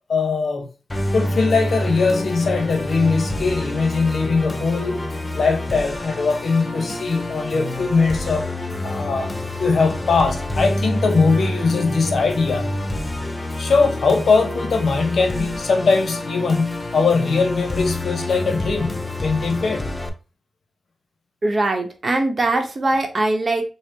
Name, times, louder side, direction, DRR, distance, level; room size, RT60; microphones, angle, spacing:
voice 1, 0.1-0.7 1.1-5.1 5.3-8.5 8.8-9.3 9.6-12.7 13.6-19.8, left 4 dB, 70° left, 0.7 m, -20 dB
Musical instrument, 0.9-20.1, left 1 dB, 25° left, 0.6 m, -27 dB
voice 2, 21.4-23.6, right 2 dB, 45° right, 0.8 m, -21 dB
3.9 x 2.0 x 3.5 m
cardioid pair, 70°, 0 cm